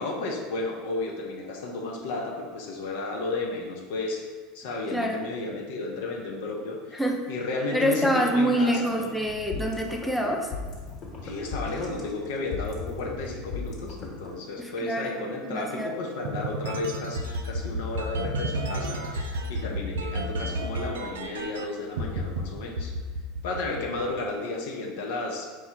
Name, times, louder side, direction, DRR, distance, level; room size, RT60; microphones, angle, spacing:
voice 1, 0.0-4.3 4.5-7.0 7.3-9.2 11.2-22.9 23.4-25.5, left 2 dB, 65° left, 0 dB, 0.7 m, -33 dB
voice 2, 4.9-5.3 6.9-7.2 7.7-10.5 14.6-15.9, equal, 5° left, 1 dB, 0.5 m, -26 dB
sound 1, 9.3-14.4, left 4 dB, 45° left, 1.0 m, -37 dB
sound 2, 16.2-21.7 22.0-22.4 22.8-24.2, right 1 dB, 75° right, 0.3 m, -31 dB
4.6 x 2.2 x 4.4 m, 1.4 s
figure-of-eight pair, 75°, 0 cm